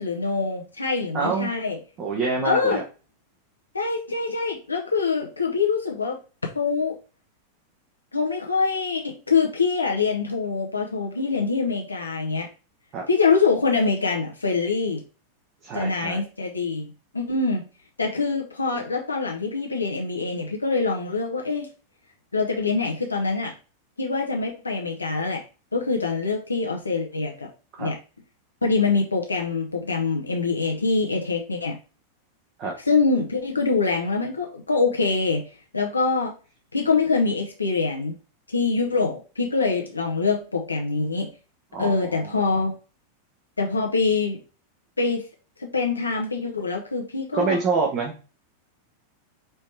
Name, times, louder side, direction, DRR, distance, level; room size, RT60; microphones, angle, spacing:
voice 1, 0.0-1.8 2.4-2.8 3.7-6.2 6.5-7.0 8.1-12.5 13.1-15.0 15.7-17.6 18.0-21.7 22.3-23.5 24.0-25.4 25.7-27.5 27.8-28.0 28.6-31.8 32.9-35.4 35.7-36.3 36.7-38.1 38.5-41.3 41.8-42.8 43.6-44.4 45.0-45.2 45.6-47.6, left 4 dB, 80° left, 1 dB, 0.7 m, -24 dB
voice 2, 1.1-1.5 2.0-2.8 12.9-13.0 15.6-16.2 27.8-27.9 32.6-32.7 41.7-42.7 47.3-48.2, right 4 dB, 35° right, 1 dB, 0.9 m, -26 dB
4.3 x 3.1 x 3.2 m, 0.34 s
figure-of-eight pair, 90°, 0 cm